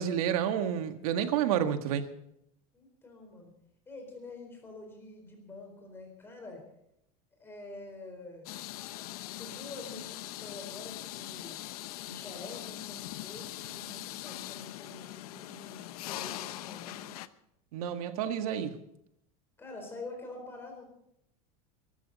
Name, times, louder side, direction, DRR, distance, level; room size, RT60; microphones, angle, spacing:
voice 1, 0.0-2.0 17.7-18.8, right 9 dB, 75° right, 7 dB, 1.7 m, -30 dB
voice 2, 2.7-3.5 3.9-6.6 7.4-8.6 9.4-11.6 12.0-17.1 19.6-20.8, left 2 dB, 10° left, 3 dB, 4.3 m, -46 dB
sound 1, 8.5-17.3, left 15 dB, 85° left, 0.9 m, -41 dB
22.5 x 13.5 x 4.1 m, 0.77 s
supercardioid pair, 170°, 19 cm